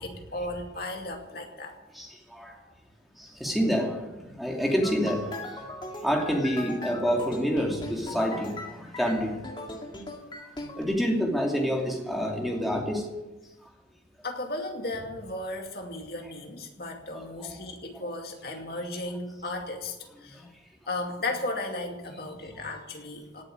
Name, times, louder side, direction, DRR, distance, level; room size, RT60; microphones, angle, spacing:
voice 1, 0.0-1.8 14.2-20.4 20.9-23.4, left 2 dB, 55° left, 3 dB, 2.5 m, -35 dB
voice 2, 1.9-2.6 3.2-9.4 10.8-13.1 13.6-13.7 17.1-17.5 20.3-20.5, equal, ahead, 0 dB, 2.7 m, -28 dB
sound 1, 4.8-10.8, left 2 dB, 25° left, 2.2 m, -39 dB
17.5 x 7.9 x 9.5 m, 1.1 s
head